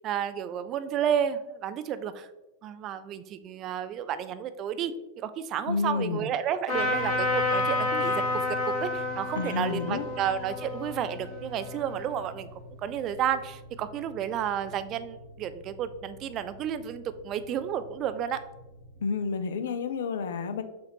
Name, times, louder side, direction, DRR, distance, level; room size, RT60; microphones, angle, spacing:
voice 1, 0.0-2.3 2.6-12.5 12.8-18.4, right 9 dB, 35° right, 13 dB, 0.3 m, -31 dB
voice 2, 5.7-6.3 9.4-10.1 19.0-20.6, left 5 dB, 60° left, 10 dB, 0.4 m, -30 dB
Trumpet, 6.7-12.2, left 2 dB, 45° left, 1.5 m, -30 dB
sound 1, 6.7-19.0, left 3 dB, 75° right, 1.2 m, -44 dB
6.9 x 2.5 x 3.0 m, 1.0 s
figure-of-eight pair, 90°, 0 cm